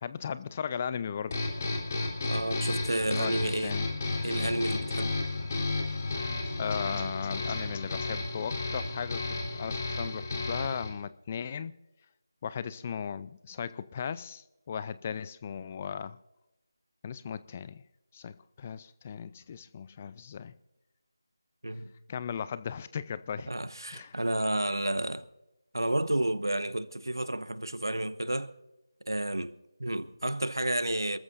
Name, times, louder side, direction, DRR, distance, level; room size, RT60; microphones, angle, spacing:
voice 1, 0.0-1.4 3.1-3.9 5.4-5.6 6.6-11.7 12.4-16.2 17.0-17.8 18.1-20.5 22.1-23.5 23.9-24.2, left 7 dB, 25° left, 0.5 m, -37 dB
sound 1, 1.3-10.9, left 2 dB, 40° left, 3.5 m, -32 dB
voice 2, 2.3-3.8 4.2-5.1 14.7-14.9 21.6-21.9 23.5-25.3 25.7-28.5 29.1-31.2, right 1 dB, 80° right, 1.0 m, -31 dB
27.5 x 14.0 x 2.6 m
figure-of-eight pair, 165°, 2 cm